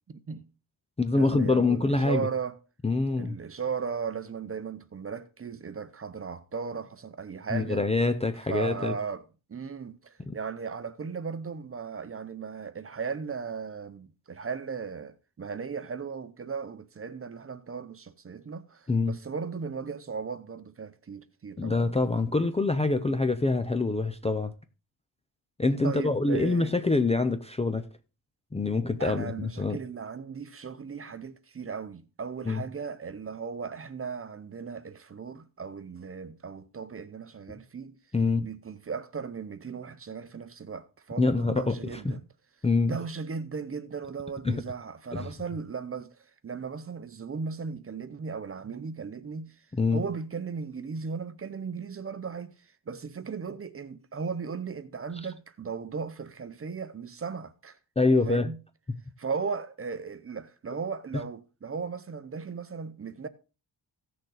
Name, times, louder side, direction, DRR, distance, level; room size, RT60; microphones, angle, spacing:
voice 1, 0.1-0.5 1.1-2.6 3.2-7.8 8.5-9.2 9.5-21.9 25.8-26.7 29.0-37.9 38.4-42.2 42.8-46.2 46.4-49.6 49.9-57.8 58.3-58.6 59.2-63.3, right 5 dB, 30° right, 0.7 m, -36 dB
voice 2, 1.0-2.3 2.8-3.4 7.5-9.0 10.3-10.4 18.9-19.1 21.6-24.5 25.6-27.9 28.5-29.8 32.5-32.6 38.1-38.4 41.2-42.2 42.6-43.0 44.4-44.6 45.1-45.3 49.8-50.0 58.0-58.5, left 3 dB, 15° left, 0.5 m, -25 dB
16.0 x 6.6 x 3.9 m
wide cardioid pair, 160°, 49 cm